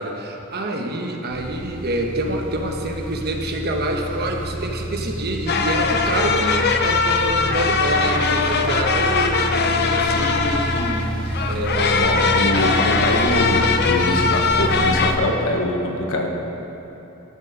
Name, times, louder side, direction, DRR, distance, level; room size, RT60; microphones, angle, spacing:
voice 1, 0.0-9.5 9.7-11.1 11.5-12.4, right 1 dB, 50° right, 2 dB, 1.1 m, -26 dB
sound 1, 1.3-15.2, right 1 dB, 5° left, 0.9 m, -29 dB
sound 2, 5.5-15.1, left 4 dB, 50° left, 0.7 m, -21 dB
voice 2, 11.9-16.3, left 1 dB, 65° left, 2 dB, 1.4 m, -23 dB
13.0 x 7.6 x 6.5 m, 3.0 s
head